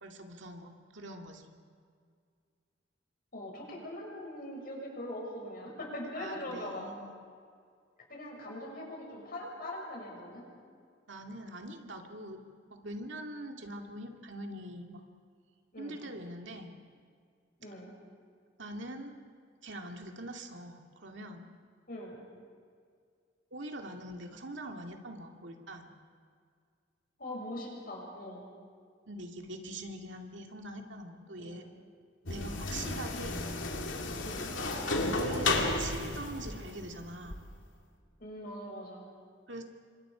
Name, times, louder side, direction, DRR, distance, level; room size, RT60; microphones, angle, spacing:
voice 1, 0.0-1.5 6.2-7.1 11.1-12.4 12.7-15.0 15.8-16.8 18.6-19.1 19.6-21.5 23.5-25.9 29.1-31.6 32.3-33.4 34.9-37.4 39.5-39.6, right 1 dB, 75° right, 3 dB, 2.3 m, -43 dB
voice 2, 3.3-6.9 8.1-10.5 15.7-16.0 17.6-17.9 21.9-22.2 27.2-28.5 31.5-31.6 32.3-32.6 34.2-34.5 38.2-39.1, left 1 dB, 50° left, -1 dB, 6.8 m, -41 dB
sound 1, 32.3-37.4, left 2 dB, 90° left, 2.7 m, -33 dB
29.5 x 25.5 x 5.1 m, 2.1 s
head